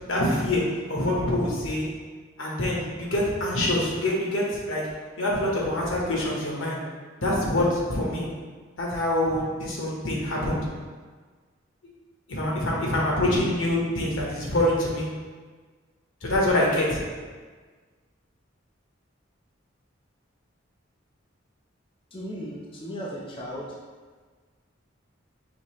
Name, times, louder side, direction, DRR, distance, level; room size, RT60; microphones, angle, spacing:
voice 1, 0.1-0.6 0.9-1.9 2.4-4.8 5.2-6.8 7.2-8.3 8.8-10.7 12.3-15.1 16.2-17.0, left 1 dB, 80° left, -4 dB, 1.1 m, -25 dB
voice 2, 22.1-23.7, equal, 30° left, -5 dB, 0.6 m, -36 dB
5.1 x 2.8 x 3.0 m, 1.4 s
head